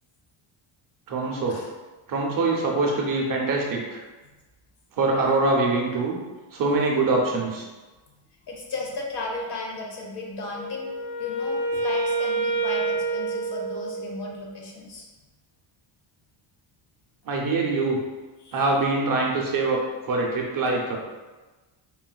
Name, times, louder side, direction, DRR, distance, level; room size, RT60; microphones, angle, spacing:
voice 1, 1.1-1.6 2.1-4.0 5.0-6.2 6.5-7.6 17.3-18.0 18.5-19.8 20.1-21.0, right 3 dB, 45° right, 0 dB, 0.4 m, -24 dB
voice 2, 8.5-15.1 18.4-18.6, left 2 dB, 55° left, -1 dB, 0.7 m, -35 dB
Wind instrument woodwind instrument, 10.5-14.4, right 3 dB, 5° right, 0.7 m, -28 dB
3.8 x 2.2 x 2.2 m, 1.2 s
cardioid pair, 150°, 50 cm